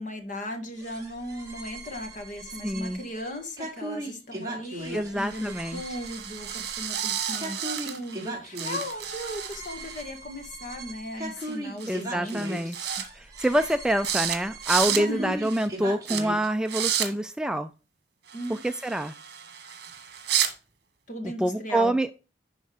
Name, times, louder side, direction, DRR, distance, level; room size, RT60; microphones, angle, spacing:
voice 1, 0.0-7.6 7.8-12.8 15.0-15.4 18.3-18.6 21.1-22.0, left 1 dB, 45° left, 4 dB, 1.8 m, -37 dB
sound 1, 0.8-16.5, right 1 dB, 20° right, 2.7 m, -39 dB
voice 2, 2.6-3.0 4.9-5.8 11.9-17.7 18.5-19.1 21.4-22.1, right 1 dB, 5° right, 9 dB, 0.3 m, -26 dB
sound 2, 5.2-8.3 8.6-10.0 11.4-11.5 11.8-12.0 12.3-13.1 13.4-13.7 14.0-14.4 14.6-15.0 15.4-15.7 16.1-16.2 16.7-17.1 18.3-20.5, right 9 dB, 65° right, 1.6 m, -32 dB
11.5 x 4.3 x 3.4 m, 0.33 s
head